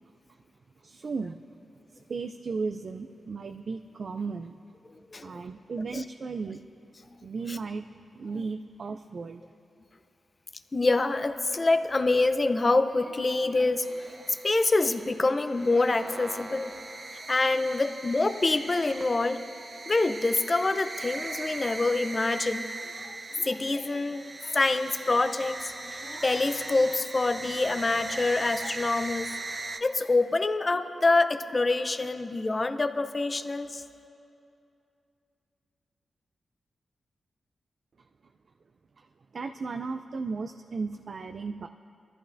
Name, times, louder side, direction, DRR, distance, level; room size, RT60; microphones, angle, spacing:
voice 1, 0.8-1.4 1.9-4.6 5.2-6.6 7.2-7.9 8.1-9.4 39.0-39.1 39.3-41.7, right 4 dB, 55° right, 8 dB, 0.4 m, -35 dB
voice 2, 5.1-5.4 5.9-6.0 7.5-7.6 10.7-16.8 17.3-19.4 19.9-29.3 29.8-33.8, left 3 dB, 35° left, 10 dB, 0.6 m, -26 dB
sound 1, 13.8-29.8, right 3 dB, 40° right, 0.8 m, -40 dB
23.0 x 14.0 x 2.6 m, 2.7 s
cardioid pair, 75°, 0 cm